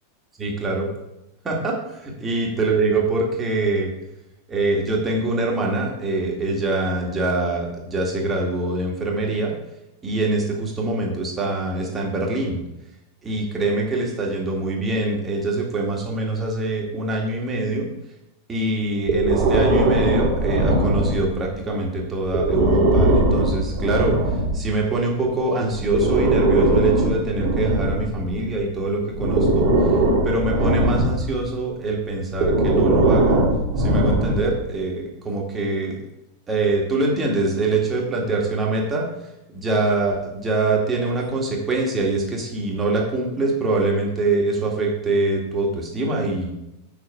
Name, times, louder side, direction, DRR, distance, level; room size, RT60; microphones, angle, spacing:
voice 1, 0.4-0.9 1.4-3.9 4.5-9.5 10.0-12.6 13.2-17.9 18.5-24.2 24.5-29.7 30.2-33.4 33.8-36.0 36.5-39.1 39.5-46.5, right 2 dB, 20° right, -1 dB, 2.1 m, -24 dB
Breathing, 19.1-21.5 22.3-24.6 25.7-28.6 29.2-31.4 32.3-34.6, right 1 dB, 40° right, 2.2 m, -20 dB
7.6 x 6.0 x 4.7 m, 0.91 s
figure-of-eight pair, 90°, 0 cm